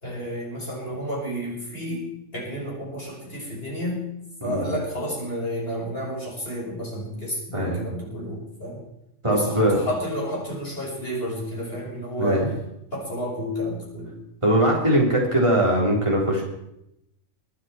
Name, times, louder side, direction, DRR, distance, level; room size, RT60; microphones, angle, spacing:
voice 1, 0.0-4.0 4.4-8.8 9.3-12.5 12.9-14.1, equal, 45° left, -3 dB, 5.9 m, -31 dB
voice 2, 7.5-7.8 9.2-9.8 12.2-12.4 14.4-16.4, right 1 dB, 20° right, -3 dB, 4.6 m, -21 dB
23.5 x 9.6 x 4.7 m, 0.83 s
omnidirectional pair, 1.4 m